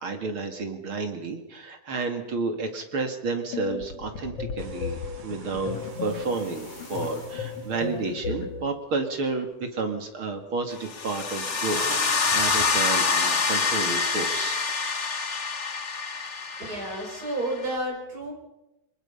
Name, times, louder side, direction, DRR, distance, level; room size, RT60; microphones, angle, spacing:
voice 1, 0.0-14.6 14.9-15.3, right 3 dB, 45° right, 6 dB, 2.4 m, -31 dB
sound 1, 3.5-8.7, left 5 dB, 50° left, 2.9 m, -35 dB
sound 2, 4.6-8.8 9.3-9.5 10.4-10.5 10.7-12.8, right 4 dB, 85° right, 4.5 m, -44 dB
sound 3, 10.8-17.7, left 4 dB, 85° left, 0.6 m, -26 dB
voice 2, 16.6-18.3, right 1 dB, 25° right, 0 dB, 6.0 m, -31 dB
25.5 x 21.5 x 5.6 m, 0.92 s
omnidirectional pair, 3.8 m